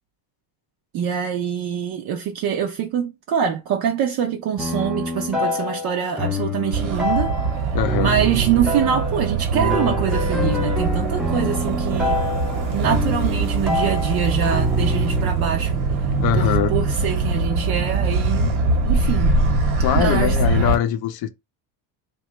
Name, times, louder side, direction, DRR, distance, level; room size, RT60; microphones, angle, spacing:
voice 1, 0.9-7.3 8.0-12.2 12.7-15.8 16.3-18.5 18.9-19.4 19.9-20.4, right 8 dB, 55° right, 0.5 m, -24 dB
sound 1, 4.6-15.3, left 1 dB, ahead, 0.5 m, -26 dB
Motor vehicle (road), 6.7-20.8, right 3 dB, 80° right, 1.1 m, -22 dB
voice 2, 7.7-8.1 16.2-16.7 19.8-21.3, left 11 dB, 55° left, 0.6 m, -22 dB
3.0 x 2.3 x 3.0 m
cardioid pair, 115°, 46 cm